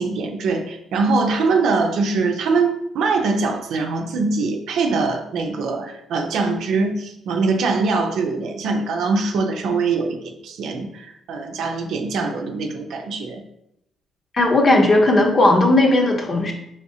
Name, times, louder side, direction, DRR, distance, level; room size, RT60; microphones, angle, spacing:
voice 1, 0.0-13.4, right 4 dB, 75° right, 4 dB, 0.7 m, -22 dB
voice 2, 14.3-16.5, left 2 dB, 35° left, 2 dB, 0.8 m, -16 dB
4.8 x 3.6 x 2.8 m, 0.81 s
cardioid pair, 105°, 0 cm